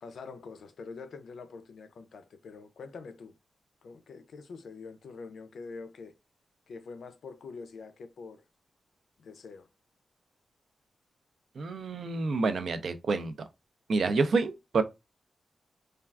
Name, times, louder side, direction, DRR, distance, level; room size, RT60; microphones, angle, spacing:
voice 1, 0.0-3.4 3.8-6.1 6.7-8.4 9.2-9.7, left 4 dB, 80° left, 0.4 m, -45 dB
voice 2, 11.6-13.3 13.9-14.8, right 4 dB, 65° right, 0.4 m, -28 dB
3.3 x 2.3 x 2.3 m
wide cardioid pair, 140°, 0 cm